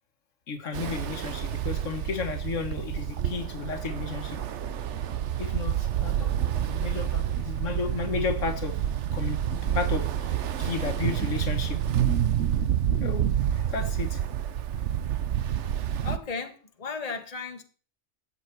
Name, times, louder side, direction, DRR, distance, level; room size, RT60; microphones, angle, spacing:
voice 1, 0.5-4.4 5.4-8.8 9.1-11.8 12.9-14.2, left 5 dB, 75° left, 7 dB, 1.7 m, -33 dB
Ocean, 0.7-16.2, right 10 dB, 65° right, 1.1 m, -28 dB
voice 2, 16.0-17.6, left 4 dB, 30° left, 6 dB, 1.3 m, -35 dB
13.5 x 8.6 x 4.6 m, 0.40 s
omnidirectional pair, 1.3 m